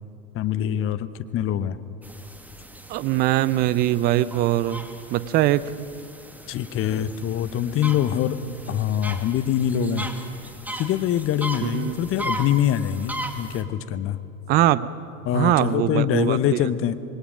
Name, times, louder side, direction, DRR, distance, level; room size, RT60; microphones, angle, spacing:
voice 1, 0.3-1.1 1.3-1.8 6.5-8.4 8.7-10.1 10.8-14.2 15.2-16.9, left 10 dB, 30° left, 13 dB, 0.9 m, -24 dB
sound 1, 2.0-13.6, right 1 dB, 5° right, 1.5 m, -37 dB
voice 2, 2.9-5.6 9.7-10.0 11.6-12.0 14.5-14.9 15.3-16.6, right 14 dB, 20° right, 18 dB, 0.4 m, -22 dB
26.0 x 20.5 x 5.1 m, 2.6 s
figure-of-eight pair, 85°, 46 cm